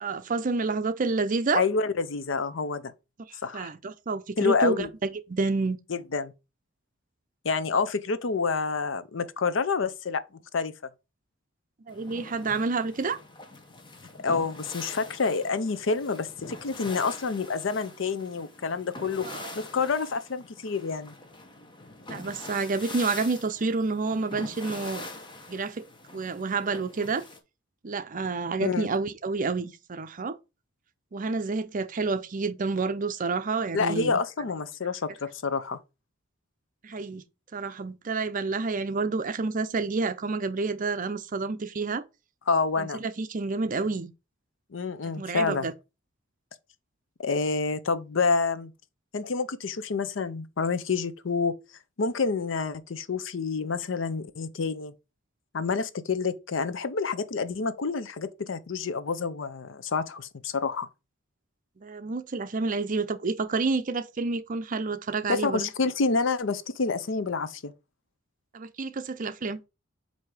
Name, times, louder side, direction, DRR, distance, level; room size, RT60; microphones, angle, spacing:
voice 1, 0.0-1.6 3.3-5.8 11.9-13.2 19.2-19.6 22.1-25.1 25.5-25.8 26.1-27.2 27.8-30.4 31.1-34.2 36.8-37.2 37.5-42.0 42.8-44.1 45.2-45.7 61.8-65.7 68.5-69.6, right 4 dB, 45° right, 0.5 m, -29 dB
voice 2, 1.5-2.9 3.4-3.7 4.4-4.9 5.9-6.3 7.4-10.2 10.5-10.7 14.2-19.3 19.5-21.1 28.6-28.9 33.7-35.8 42.5-43.0 44.7-45.7 47.2-48.7 49.1-51.5 52.0-54.9 55.5-60.9 65.3-67.7, left 4 dB, 70° left, 0.6 m, -28 dB
sound 1, 11.9-27.4, left 2 dB, 25° left, 1.0 m, -44 dB
7.6 x 2.7 x 4.8 m
head